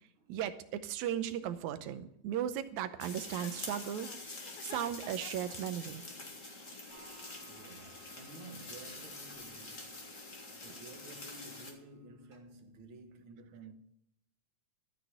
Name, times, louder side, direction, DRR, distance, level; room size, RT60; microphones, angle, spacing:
voice 1, 0.3-4.1 4.6-6.0, right 10 dB, 85° right, 2.2 m, -36 dB
sound 1, 3.0-11.7, left 2 dB, 30° left, 2.0 m, -46 dB
Chuckle chortle, 3.3-5.5, left 10 dB, 85° left, 2.3 m, -50 dB
sound 2, 6.9-12.4, right 3 dB, 25° right, 1.4 m, -63 dB
voice 2, 7.5-13.7, right 3 dB, 55° right, 1.7 m, -53 dB
13.0 x 6.2 x 9.0 m
omnidirectional pair, 3.3 m